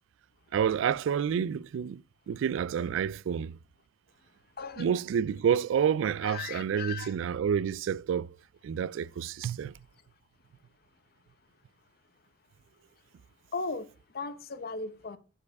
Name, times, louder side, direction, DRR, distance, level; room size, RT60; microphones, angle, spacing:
voice 1, 0.5-2.0 2.3-3.6 4.8-8.3 8.6-9.7, right 8 dB, 90° right, 0.3 m, -29 dB
voice 2, 4.6-4.9 6.2-7.1 13.5-13.9 14.1-15.2, left 4 dB, 55° left, 0.8 m, -37 dB
7.3 x 4.7 x 4.7 m
head